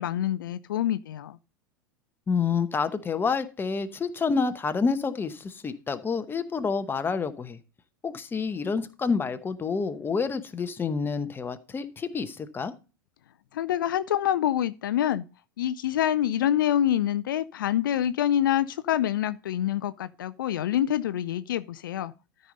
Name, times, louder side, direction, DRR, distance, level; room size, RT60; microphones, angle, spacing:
voice 1, 0.0-1.4 13.5-15.3 15.6-22.1, left 11 dB, 70° left, 0.4 m, -26 dB
voice 2, 2.3-7.6 8.0-12.7, left 5 dB, 20° left, 1.0 m, -28 dB
13.0 x 5.4 x 4.0 m
figure-of-eight pair, 85°, 12 cm